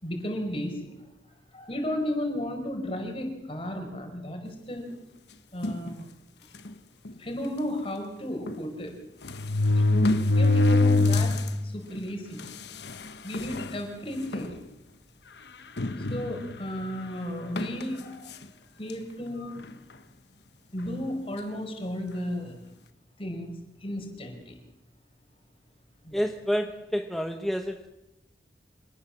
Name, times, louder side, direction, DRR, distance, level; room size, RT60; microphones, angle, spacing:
voice 1, 0.0-0.9 1.5-4.8 5.5-6.1 7.2-8.9 9.7-9.8 10.3-11.3 11.6-12.4 13.2-14.6 16.0-18.3 18.8-19.5 20.7-22.6 23.2-23.5 23.8-24.6 26.0-26.2, left 1 dB, 30° left, 4 dB, 5.1 m, -34 dB
sound 1, 5.6-5.9 6.7-6.8 7.1-7.2 8.5-8.6 9.2-11.5 12.0-12.1 12.9-13.0 13.3-13.7 14.3-14.5 15.8-16.6 17.6-17.8, left 2 dB, 70° left, 1.3 m, -23 dB
voice 2, 26.1-27.9, equal, ahead, 4 dB, 1.1 m, -29 dB
26.0 x 19.0 x 7.3 m, 0.88 s
head